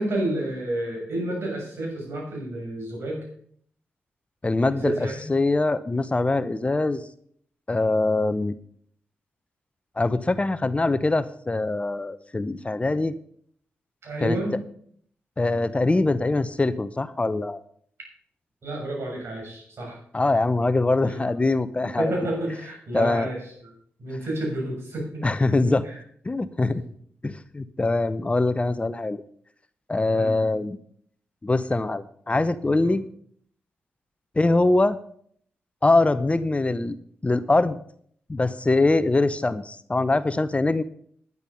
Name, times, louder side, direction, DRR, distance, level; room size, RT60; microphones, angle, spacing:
voice 1, 0.0-3.2 4.6-5.3 14.0-14.6 18.6-20.0 21.0-21.4 21.8-23.4 24.0-25.2 25.5-26.0 26.7-26.8 30.1-30.3 32.8-32.9, right 1 dB, 65° right, 0 dB, 7.0 m, -30 dB
voice 2, 4.4-7.0 7.7-8.6 10.0-13.1 14.2-14.6 15.4-17.6 20.1-22.1 22.9-23.3 25.2-25.8 26.2-26.8 27.2-29.2 29.9-30.8 31.4-33.0 34.4-35.0 35.8-37.0 37.2-37.8 38.3-40.8, left 2 dB, 25° left, 14 dB, 0.7 m, -23 dB
11.0 x 10.5 x 5.6 m, 0.62 s
supercardioid pair, 50°, 5 cm